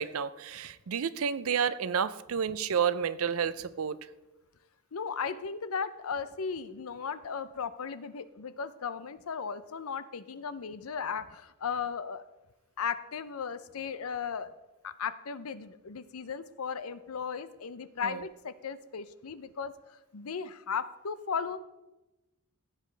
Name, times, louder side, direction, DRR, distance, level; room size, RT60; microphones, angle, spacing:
voice 1, 0.0-4.0 18.0-18.2, right 7 dB, 80° right, 16 dB, 0.5 m, -30 dB
voice 2, 4.9-12.2 12.8-14.5 14.8-21.6, left 6 dB, 85° left, 14 dB, 0.6 m, -36 dB
15.5 x 8.3 x 3.3 m, 1.0 s
head